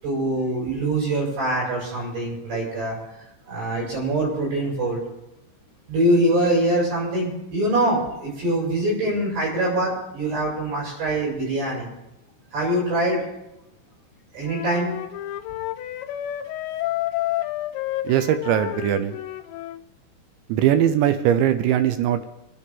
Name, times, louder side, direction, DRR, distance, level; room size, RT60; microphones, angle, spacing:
voice 1, 0.0-3.0 3.5-5.0 5.9-11.9 12.5-13.2 14.3-14.9, right 1 dB, 65° right, -5 dB, 8.9 m, -23 dB
Wind instrument woodwind instrument, 14.5-19.8, left 14 dB, 80° left, 2.7 m, -30 dB
voice 2, 18.0-19.2 20.5-22.3, right 10 dB, 80° right, 10 dB, 2.9 m, -20 dB
25.5 x 10.0 x 3.8 m, 0.89 s
omnidirectional pair, 5.5 m